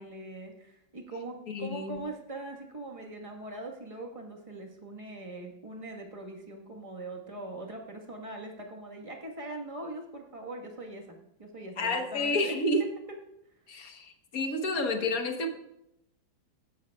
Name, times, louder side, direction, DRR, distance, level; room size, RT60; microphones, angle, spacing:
voice 1, 0.0-12.6, right 2 dB, 20° right, 1 dB, 1.3 m, -41 dB
voice 2, 1.5-2.0 11.8-12.8 13.7-15.5, left 2 dB, 50° left, 5 dB, 1.4 m, -30 dB
16.5 x 10.5 x 2.3 m, 0.82 s
omnidirectional pair, 2.2 m